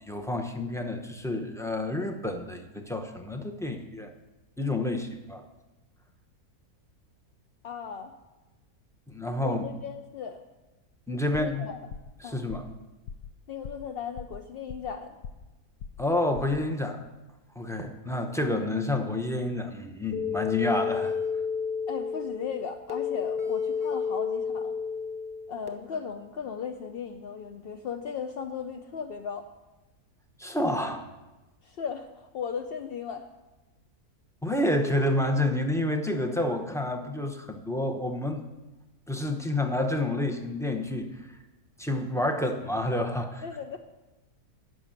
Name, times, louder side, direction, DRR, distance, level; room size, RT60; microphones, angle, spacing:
voice 1, 0.1-4.1 4.6-5.4 9.1-9.6 11.1-11.7 12.2-12.6 16.0-17.0 17.6-21.2 30.4-31.0 34.4-38.4 39.1-41.3 41.8-43.4, left 1 dB, 5° left, 4 dB, 0.4 m, -29 dB
voice 2, 7.6-8.1 9.4-10.4 11.3-11.8 12.2-12.4 13.5-15.2 21.9-24.7 25.5-29.4 31.6-33.3 43.4-43.8, left 7 dB, 65° left, 6 dB, 0.5 m, -36 dB
sound 1, 11.3-11.6 11.9-12.2 12.5-12.8 13.1-13.3 13.6-13.9 14.2-15.0 15.2-15.5 15.8-16.1 16.3-16.6, left 6 dB, 90° left, 1.2 m, -41 dB
sound 2, 20.1-25.7, left 6 dB, 25° right, 0.9 m, -31 dB
12.5 x 5.5 x 8.8 m, 1.1 s
omnidirectional pair, 1.6 m